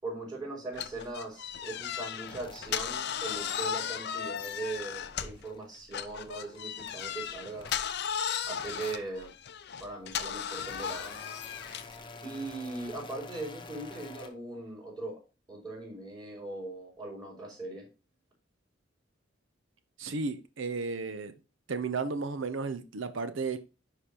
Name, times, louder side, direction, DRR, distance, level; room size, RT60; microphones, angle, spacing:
voice 1, 0.0-7.7 8.5-9.3 9.8-11.1 12.2-15.2 15.5-17.8, right 2 dB, 20° right, 4.4 m, -40 dB
sound 1, 0.7-5.5 5.9-12.0, left 8 dB, 55° left, 0.6 m, -36 dB
sound 2, 1.6-5.7 6.1-8.2 8.5-9.3 10.0-14.3, left 3 dB, 25° left, 1.0 m, -49 dB
voice 2, 20.0-21.4 21.7-23.6, right 4 dB, 70° right, 0.7 m, -33 dB
9.8 x 5.1 x 2.9 m
head